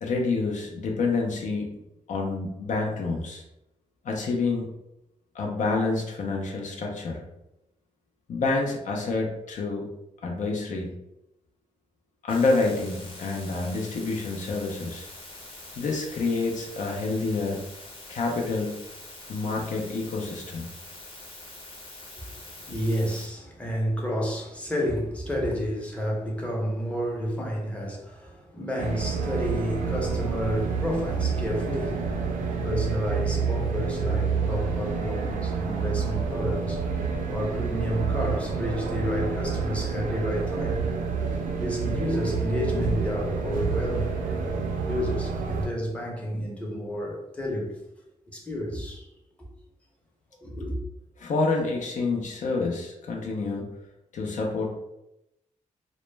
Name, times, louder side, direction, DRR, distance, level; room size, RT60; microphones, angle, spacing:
voice 1, 0.0-1.8 2.1-3.4 4.0-4.7 5.3-7.2 8.3-9.9 10.2-10.9 12.2-15.1 15.8-17.6 18.1-18.8 19.3-20.7 51.2-53.7 54.1-54.7, left 3 dB, 65° left, 0.5 m, -28 dB
sound 1, 12.3-23.3, left 2 dB, 40° left, 0.8 m, -44 dB
voice 2, 22.2-32.1 32.6-36.9 37.3-40.9 41.6-44.2 44.9-47.7 48.3-49.1 49.4-49.5 50.4-50.8, equal, 10° left, 0.6 m, -30 dB
sound 2, 28.8-45.7, right 5 dB, 90° right, 0.4 m, -28 dB
2.1 x 2.0 x 3.2 m
cardioid pair, 100°, 14 cm